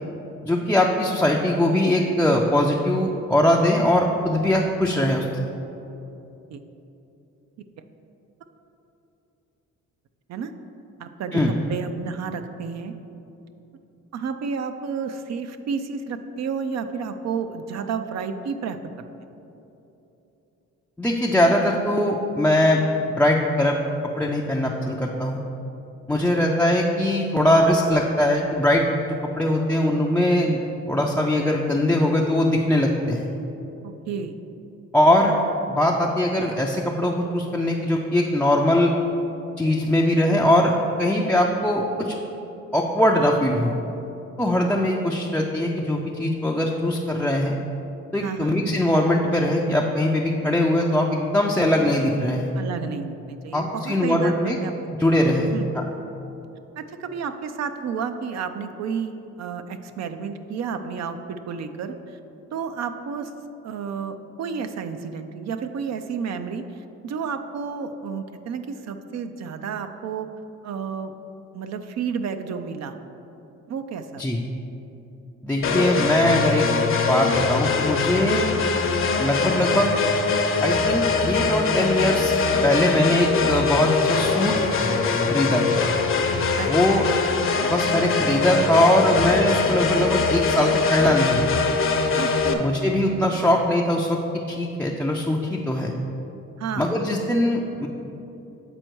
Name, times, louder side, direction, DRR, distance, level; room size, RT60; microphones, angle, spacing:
voice 1, 0.5-5.3 11.3-11.5 21.0-22.8 23.1-23.8 24.2-25.4 26.1-28.9 29.4-30.6 30.9-33.3 34.9-35.4 35.7-38.9 39.6-40.7 41.0-42.1 42.7-43.7 44.4-47.5 48.1-52.5 53.5-54.6 55.0-55.8 74.2-74.4 75.4-76.7 77.1-78.4 79.2-79.9 80.6-82.3 82.6-84.6 85.3-85.8 86.7-87.0 87.6-91.4 92.6-94.2 94.5-95.9 96.8-97.9, left 1 dB, 5° left, -2 dB, 0.4 m, -21 dB
voice 2, 11.0-12.9 14.1-18.8 26.3-26.4 33.8-34.3 48.2-48.6 52.5-54.7 55.5-55.7 56.8-62.2 62.5-63.3 63.6-70.3 70.6-71.1 71.5-72.9 73.7-74.2 86.6-87.1 92.2-92.7 96.6-96.9, right 6 dB, 60° right, 8 dB, 0.5 m, -31 dB
sound 1, 75.6-92.5, left 4 dB, 45° left, 0.7 m, -22 dB
7.8 x 4.3 x 4.5 m, 2.9 s
cardioid pair, 90°, 30 cm